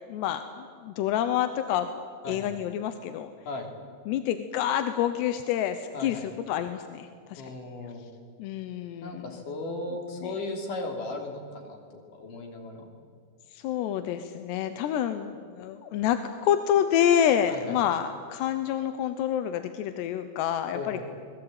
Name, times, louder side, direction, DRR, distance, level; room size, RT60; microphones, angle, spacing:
voice 1, 0.1-1.9 2.3-3.3 4.1-7.4 8.4-9.2 10.2-10.3 13.5-21.0, left 10 dB, 90° left, 9 dB, 3.1 m, -28 dB
voice 2, 5.9-6.3 7.4-8.0 9.0-12.9 17.5-17.8 20.7-21.1, left 2 dB, 55° left, 2 dB, 4.6 m, -36 dB
26.5 x 21.0 x 8.9 m, 2.1 s
omnidirectional pair, 4.7 m